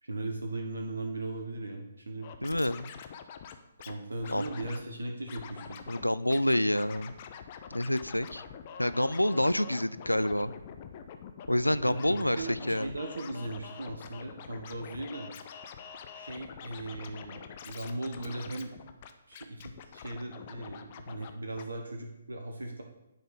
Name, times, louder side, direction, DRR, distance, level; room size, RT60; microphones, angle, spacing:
voice 1, 0.0-2.3 3.9-5.8 11.8-15.3 16.1-18.7 19.3-22.8, right 2 dB, 70° right, 3 dB, 1.1 m, -38 dB
Scratching (performance technique), 2.2-3.9 4.2-4.8 5.3-6.0 6.3-21.3 21.6-21.7, left 7 dB, 35° left, 0.6 m, -46 dB
voice 2, 2.4-2.9 4.3-4.4 5.9-7.1 7.7-8.4 8.8-10.5 11.5-12.9, left 1 dB, 90° left, 15 dB, 0.3 m, -28 dB
10.0 x 4.3 x 5.0 m, 0.91 s
figure-of-eight pair, 130°, 0 cm